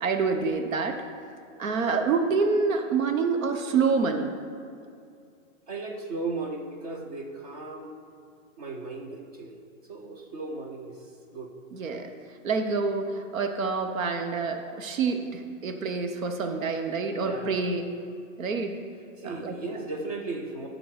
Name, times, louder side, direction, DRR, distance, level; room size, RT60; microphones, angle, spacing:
voice 1, 0.0-1.0 1.6-4.4 11.7-12.1 12.4-17.8 18.4-18.8 19.2-19.5, right 4 dB, 80° right, 6 dB, 1.0 m, -27 dB
voice 2, 5.7-7.9 8.6-9.6 9.9-11.5 17.2-17.6 19.2-20.7, right 3 dB, 30° right, 3 dB, 0.6 m, -36 dB
10.5 x 3.8 x 6.3 m, 2.4 s
hypercardioid pair, 170°, 40 cm